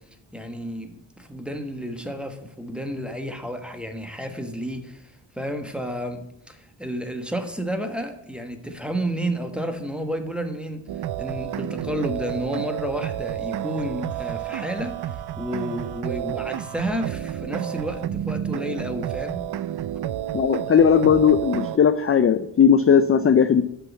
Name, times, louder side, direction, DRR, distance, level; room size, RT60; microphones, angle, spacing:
voice 1, 0.3-10.8 11.2-19.5, equal, ahead, 6 dB, 1.2 m, -31 dB
sound 1, 10.9-21.8, right 11 dB, 55° right, 0.5 m, -30 dB
voice 2, 20.3-23.6, left 7 dB, 30° left, 11 dB, 0.4 m, -17 dB
6.4 x 6.3 x 7.2 m, 0.81 s
wide cardioid pair, 105°, 47 cm